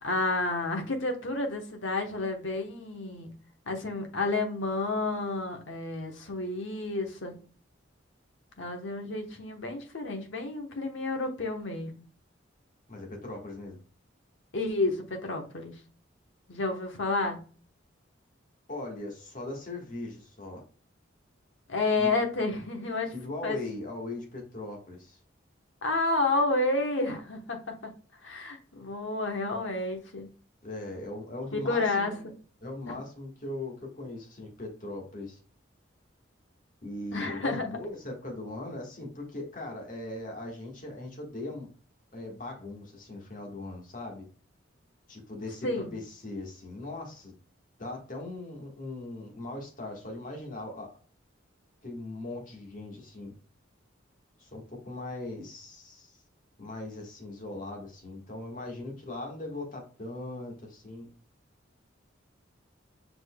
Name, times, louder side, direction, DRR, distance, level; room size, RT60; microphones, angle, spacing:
voice 1, 0.0-3.3 3.7-7.3 8.6-12.0 14.5-15.7 16.5-17.4 21.7-23.1 23.4-23.6 25.8-27.9 28.2-30.3 31.5-32.1 32.9-33.0 37.1-37.8 45.6-45.9, left 2 dB, 70° left, 4 dB, 1.1 m, -30 dB
voice 2, 12.9-13.8 18.7-20.6 22.0-22.1 23.1-25.2 30.6-32.3 32.6-35.4 36.8-41.7 42.1-44.2 45.1-47.3 47.8-50.9 51.8-53.3 54.4-56.2 56.6-61.1, left 2 dB, 40° left, 0 dB, 1.5 m, -39 dB
5.1 x 4.2 x 2.2 m, 0.39 s
head